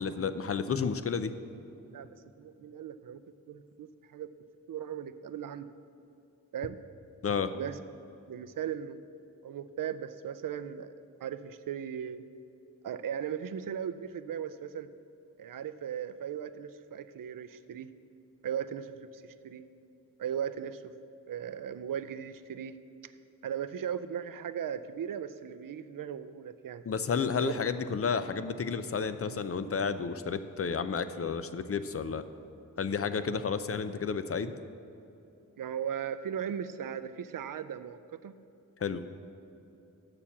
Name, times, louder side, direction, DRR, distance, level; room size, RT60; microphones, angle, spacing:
voice 1, 0.0-1.3 7.2-7.5 26.9-32.2 32.8-34.5 38.8-39.0, left 6 dB, 45° left, 11 dB, 0.5 m, -31 dB
voice 2, 2.4-3.2 3.5-4.3 4.7-5.7 6.5-6.8 7.5-7.8 8.3-9.0 9.4-10.9 11.2-12.2 12.8-14.9 15.4-17.9 18.4-19.6 20.2-20.9 21.3-22.7 23.4-26.8 27.4-27.5 35.6-38.3, right 8 dB, 75° right, 13 dB, 0.5 m, -37 dB
7.1 x 6.7 x 7.2 m, 2.8 s
wide cardioid pair, 75°, 33 cm